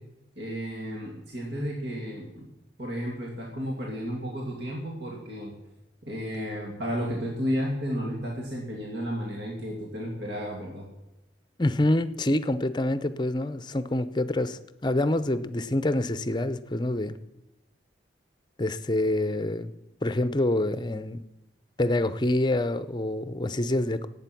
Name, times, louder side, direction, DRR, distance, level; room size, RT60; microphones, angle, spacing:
voice 1, 0.4-2.5 2.8-5.5 6.0-10.9, equal, 70° right, 2.6 m, -32 dB
voice 2, 11.6-17.2 18.6-19.7 20.0-21.2 21.8-24.1, left 1 dB, 25° left, 0.6 m, -26 dB
18.0 x 8.5 x 6.0 m
head